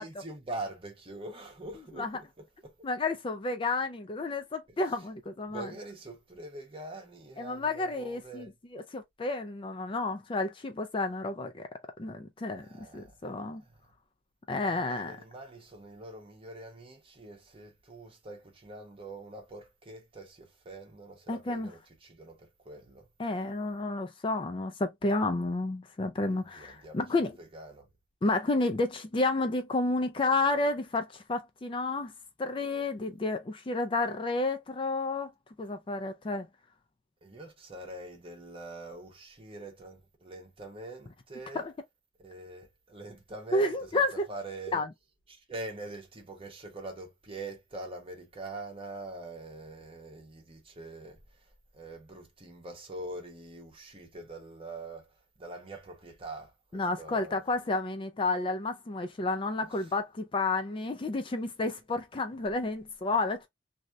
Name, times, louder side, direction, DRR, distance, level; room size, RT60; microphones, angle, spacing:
voice 1, 0.0-2.1 2.6-2.7 5.5-8.5 12.6-13.1 13.6-13.8 14.6-22.4 22.6-23.1 26.5-27.9 37.2-41.6 42.2-44.8 45.3-51.2 51.7-55.1 55.4-57.4 59.6-59.7, right 2 dB, 30° right, 1.1 m, -44 dB
voice 2, 2.8-5.7 7.4-11.7 12.0-13.6 14.5-15.2 21.3-21.7 23.2-27.4 28.2-32.1 32.4-35.3 35.6-36.5 41.5-41.7 43.5-44.3 44.7-44.9 56.7-63.5, left 2 dB, 30° left, 0.4 m, -31 dB
3.1 x 2.7 x 2.3 m
head